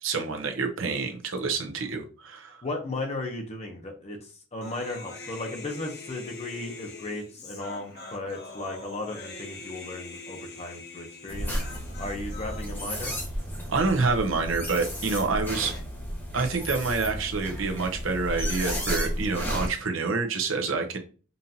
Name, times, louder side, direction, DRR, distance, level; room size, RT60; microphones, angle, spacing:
voice 1, 0.0-2.6 13.7-15.7 16.3-21.0, right 4 dB, 70° right, 4 dB, 0.8 m, -27 dB
voice 2, 2.6-11.5 12.0-13.1, left 2 dB, 35° left, 2 dB, 0.8 m, -35 dB
Human voice, 4.6-12.6, left 3 dB, 55° left, 1.0 m, -43 dB
Puppy Sleeping, 11.3-19.7, equal, 10° left, 1.1 m, -33 dB
5.4 x 2.6 x 2.8 m, 0.36 s
head